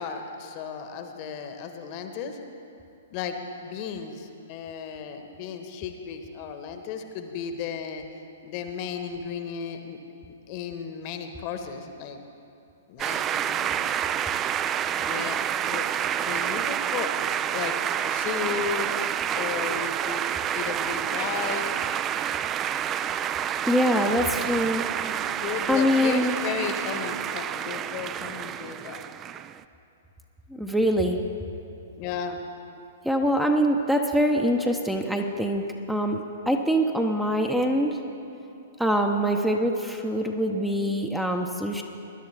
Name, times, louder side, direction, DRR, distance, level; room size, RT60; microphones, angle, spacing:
voice 1, 0.0-2.4 3.1-8.0 8.4-10.0 10.5-12.2 12.9-13.9 15.1-17.1 17.5-17.7 18.0-18.9 19.3-20.3 20.5-21.8 23.9-24.2 25.3-29.0 32.0-32.4, left 7 dB, 40° left, 6 dB, 1.1 m, -34 dB
sound 1, 13.0-29.6, right 9 dB, 25° right, 0.3 m, -28 dB
voice 2, 23.7-25.4 25.7-26.4 30.5-31.2 33.0-38.0 38.8-41.8, equal, 5° right, 3 dB, 0.7 m, -24 dB
20.0 x 11.0 x 3.3 m, 2.7 s
figure-of-eight pair, 115°, 0 cm